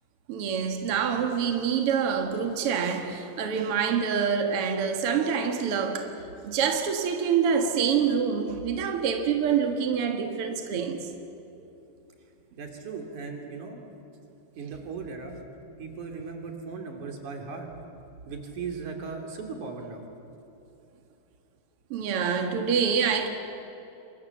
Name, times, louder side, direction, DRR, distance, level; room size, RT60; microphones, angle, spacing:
voice 1, 0.3-6.2 6.4-11.1 21.9-23.3, right 7 dB, 85° right, 1.2 m, -26 dB
voice 2, 12.6-13.8 14.6-15.4 15.8-17.7 18.3-20.1, right 5 dB, 45° right, 3.9 m, -37 dB
28.0 x 25.0 x 7.3 m
omnidirectional pair, 5.5 m